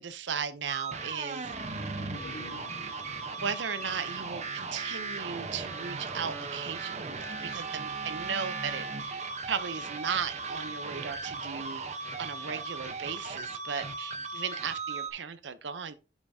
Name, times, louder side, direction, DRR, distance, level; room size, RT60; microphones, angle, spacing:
voice 1, 0.0-1.5 3.4-11.9 12.2-15.9, right 6 dB, 90° right, 0.6 m, -36 dB
sound 1, 0.7-15.1, right 4 dB, 40° right, 0.9 m, -37 dB
sound 2, 1.5-5.2 5.6-5.7, left 1 dB, 75° left, 2.5 m, -50 dB
8.1 x 7.2 x 2.7 m
head